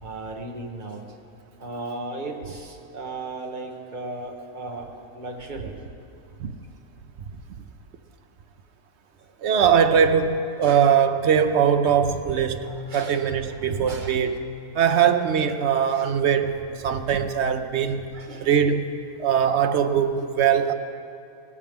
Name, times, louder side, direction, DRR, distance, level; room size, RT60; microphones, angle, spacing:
voice 1, 0.0-1.1 1.6-5.8 9.2-9.3 10.6-10.8 12.7-13.2 13.9-14.2 14.9-15.1 15.9-16.1 18.1-18.5, right 2 dB, 35° right, 1 dB, 1.3 m, -36 dB
voice 2, 9.4-14.3 14.7-18.0 18.4-18.9 19.2-20.7, right 7 dB, 60° right, 8 dB, 0.8 m, -21 dB
18.5 x 13.5 x 3.6 m, 2.6 s
omnidirectional pair, 1.6 m